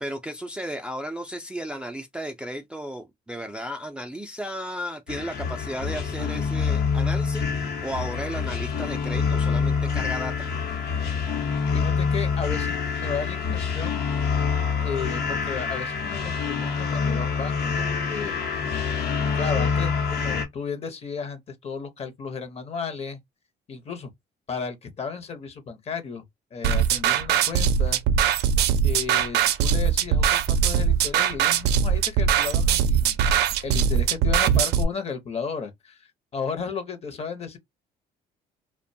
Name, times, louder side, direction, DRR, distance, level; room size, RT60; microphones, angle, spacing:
voice 1, 0.0-10.5, equal, 5° right, 0.4 m, -34 dB
sound 1, 5.1-20.5, left 5 dB, 70° left, 0.9 m, -26 dB
voice 2, 11.7-14.1 14.8-18.4 19.2-23.2 23.7-24.1 24.5-26.2 26.5-28.0 28.8-37.6, left 5 dB, 35° left, 0.8 m, -34 dB
sound 2, 26.6-34.8, right 8 dB, 80° right, 0.4 m, -21 dB
2.5 x 2.2 x 2.6 m
cardioid pair, 110°, 17 cm